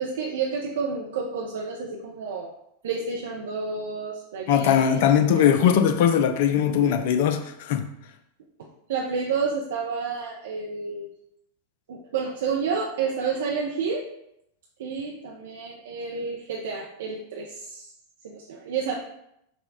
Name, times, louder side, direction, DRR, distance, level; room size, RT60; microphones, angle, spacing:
voice 1, 0.0-2.5 2.8-5.5 6.8-6.9 8.9-11.1 11.9-14.0 14.8-17.9 18.2-18.9, right 5 dB, 60° right, -2 dB, 0.5 m, -30 dB
voice 2, 4.5-7.8, left 8 dB, 50° left, 8 dB, 0.4 m, -20 dB
5.9 x 2.3 x 3.7 m, 0.79 s
figure-of-eight pair, 90°, 0 cm